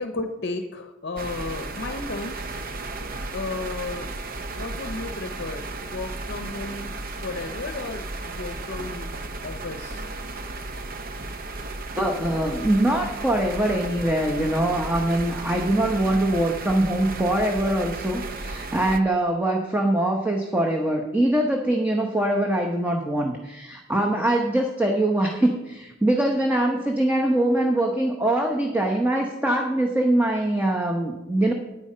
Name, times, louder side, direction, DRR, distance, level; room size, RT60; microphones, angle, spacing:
voice 1, 0.0-2.4 3.3-4.1 4.5-9.1 9.4-10.0, left 3 dB, 55° left, 6 dB, 0.7 m, -33 dB
sound 1, 1.2-19.0, right 2 dB, 45° right, 0.7 m, -34 dB
voice 2, 12.0-31.5, right 1 dB, 10° right, 1 dB, 0.9 m, -23 dB
9.6 x 8.9 x 5.5 m, 1.0 s
head